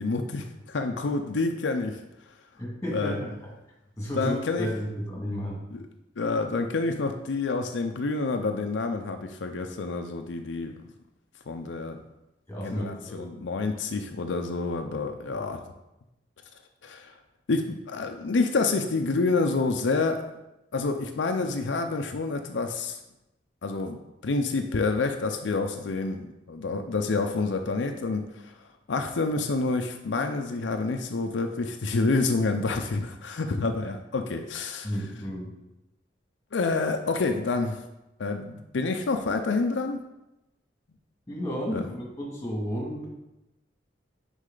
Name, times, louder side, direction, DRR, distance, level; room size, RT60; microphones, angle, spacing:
voice 1, 0.0-2.0 2.9-3.2 4.1-4.7 5.7-5.8 6.2-10.7 11.5-12.0 12.6-15.6 16.8-17.1 17.5-20.3 20.7-23.0 23.6-28.5 28.9-34.9 36.5-37.8 38.2-40.0 41.7-41.8, left 3 dB, 85° left, 5 dB, 0.5 m, -28 dB
voice 2, 2.6-3.3 4.0-5.6 12.5-13.5 34.8-35.5 41.3-43.1, equal, 15° left, -3 dB, 2.0 m, -32 dB
6.4 x 5.4 x 3.8 m, 0.93 s
head